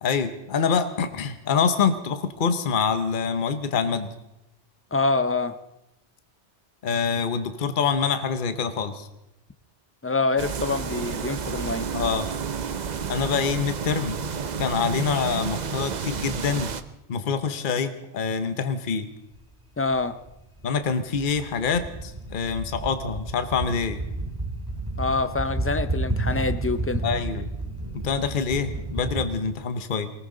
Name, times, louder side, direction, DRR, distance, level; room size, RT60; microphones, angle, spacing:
voice 1, 0.0-4.1 6.8-9.1 11.9-12.3 13.1-14.2 14.6-16.7 17.1-19.1 20.6-24.0 27.0-27.5 27.9-30.1, left 6 dB, 50° left, 10 dB, 1.0 m, -26 dB
voice 2, 4.9-5.6 10.0-11.9 19.8-20.2 25.0-27.0, left 3 dB, 15° left, 11 dB, 0.5 m, -25 dB
sound 1, 10.4-16.8, right 6 dB, 45° right, 0.7 m, -31 dB
sound 2, 19.3-19.4 19.8-29.2, right 2 dB, 20° right, 3.7 m, -31 dB
19.0 x 18.5 x 3.9 m, 0.88 s
omnidirectional pair, 1.2 m